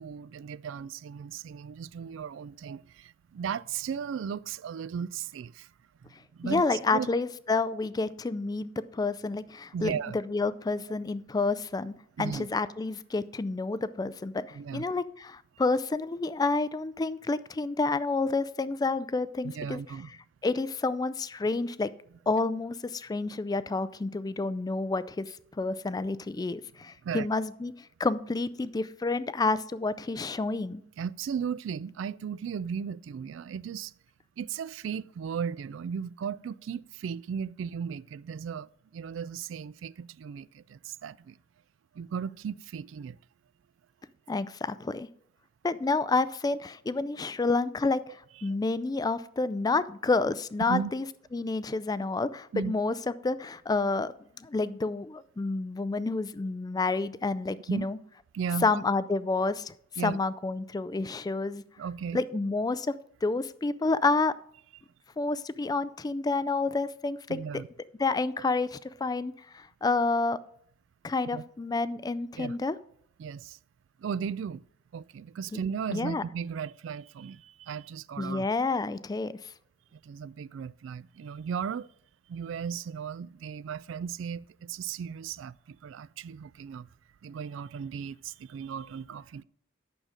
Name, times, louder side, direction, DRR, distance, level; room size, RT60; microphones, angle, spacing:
voice 1, 0.0-5.7 6.0-7.1 9.7-10.2 12.2-12.5 14.5-14.8 19.4-20.1 27.0-27.3 31.0-33.9 34.4-41.4 41.9-43.2 48.4-48.6 50.7-50.9 52.5-52.7 57.7-57.9 58.3-58.7 60.0-60.2 61.8-62.2 67.3-67.7 71.3-71.4 72.4-72.6 73.2-73.6 74.0-74.6 74.9-78.5 79.9-81.9 82.3-86.9 87.2-89.4, right 7 dB, 75° right, 0.3 m, -36 dB
voice 2, 6.4-9.9 10.3-19.8 20.4-21.9 22.3-30.8 44.3-45.1 45.6-51.1 51.3-52.9 53.2-54.1 54.4-58.0 58.6-59.7 60.0-61.6 62.1-62.9 63.2-64.3 65.2-67.6 68.0-70.4 71.0-72.8 75.5-75.6 75.9-76.2 78.2-79.5, left 3 dB, 20° left, 0.3 m, -29 dB
8.9 x 6.5 x 4.9 m
head